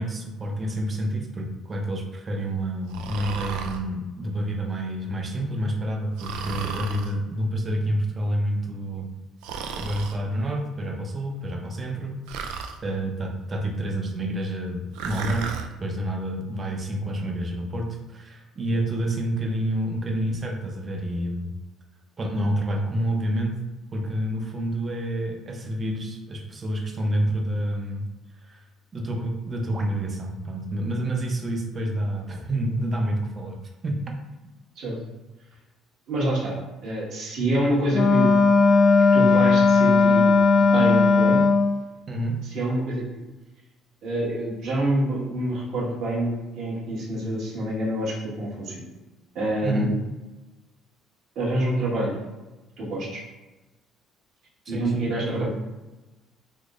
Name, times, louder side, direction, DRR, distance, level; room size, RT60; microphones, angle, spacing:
voice 1, 0.0-9.1 9.8-12.2 12.8-15.5 15.8-21.5 22.2-23.6 23.9-28.1 28.4-28.6 28.9-33.6 33.8-34.1 42.1-42.4 49.6-49.9 54.7-55.5, right 1 dB, 30° right, 2 dB, 0.6 m, -28 dB
Breathing, 2.9-3.8 6.2-7.1 9.4-10.2 12.3-12.8 14.9-15.7, right 5 dB, 85° right, 0.3 m, -34 dB
voice 2, 36.1-36.6 36.8-38.3 39.1-41.4 42.4-43.0 44.0-48.8 49.3-49.9 51.3-52.1 52.8-53.2 54.7-55.5, right 1 dB, 65° right, -6 dB, 1.4 m, -26 dB
Wind instrument woodwind instrument, 37.9-41.8, left 4 dB, 50° left, 0.4 m, -17 dB
3.6 x 3.0 x 2.5 m, 1.1 s
cardioid pair, 105°, 0 cm